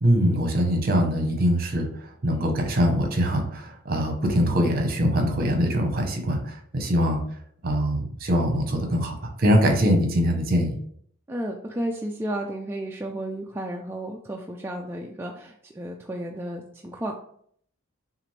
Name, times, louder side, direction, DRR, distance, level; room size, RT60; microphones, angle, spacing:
voice 1, 0.0-1.9 2.2-7.2 7.6-10.7, equal, 45° right, 3 dB, 0.9 m, -23 dB
voice 2, 11.3-17.2, right 1 dB, 10° right, 0 dB, 0.3 m, -33 dB
6.0 x 2.5 x 3.2 m, 0.64 s
head